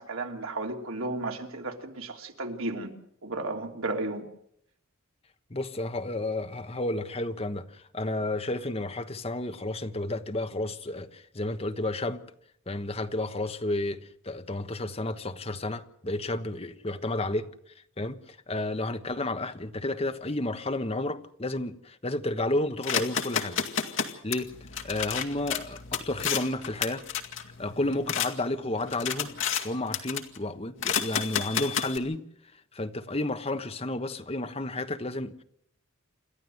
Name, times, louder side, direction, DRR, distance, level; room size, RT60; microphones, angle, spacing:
voice 1, 0.0-2.9 3.2-4.3, right 2 dB, 85° right, 3.1 m, -33 dB
voice 2, 5.5-12.2 12.7-17.5 18.0-23.6 24.2-24.5 24.8-27.0 27.6-29.3 29.6-32.2 32.7-35.4, left 2 dB, 30° left, 1.2 m, -31 dB
sound 1, 22.8-28.3 28.7-29.7 29.9-30.4 30.8-32.0, left 8 dB, 65° left, 2.1 m, -31 dB
28.5 x 12.5 x 7.9 m
head